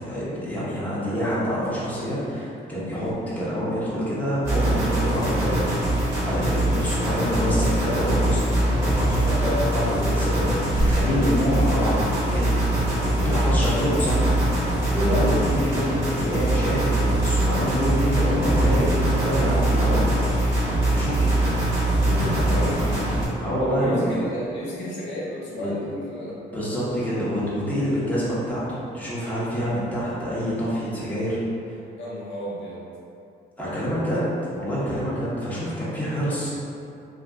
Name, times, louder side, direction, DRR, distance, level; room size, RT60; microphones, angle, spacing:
voice 1, 0.1-3.1 3.3-8.5 9.1-12.1 12.3-12.5 13.1-20.0 20.9-21.5 22.0-22.9 23.4-24.1 25.6-25.7 26.1-31.4 31.6-31.8 33.6-34.2 34.5-36.5, equal, 10° left, -9 dB, 1.0 m, -27 dB
sound 1, 2.9-3.9 7.4-7.5 9.5-9.6 10.3-11.4, left 1 dB, 45° left, 0.5 m, -34 dB
sound 2, 4.4-23.3, right 1 dB, 15° right, 1.3 m, -22 dB
voice 2, 22.5-26.4 32.0-32.8, equal, 70° left, -6 dB, 0.8 m, -32 dB
2.5 x 2.5 x 3.4 m, 2.7 s
cardioid pair, 90°, 20 cm